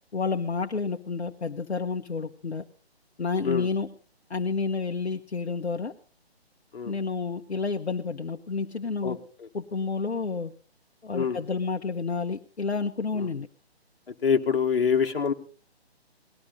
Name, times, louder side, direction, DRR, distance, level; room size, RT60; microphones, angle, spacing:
voice 1, 0.1-2.6 3.2-3.9 4.3-5.9 6.8-9.2 9.5-10.5 11.0-13.5, left 4 dB, 80° left, 4 dB, 1.0 m, -30 dB
voice 2, 9.0-9.5 11.1-11.4 13.1-13.3 14.2-15.3, left 6 dB, 60° left, 5 dB, 1.5 m, -25 dB
18.5 x 12.5 x 3.9 m, 0.41 s
figure-of-eight pair, 145°, 32 cm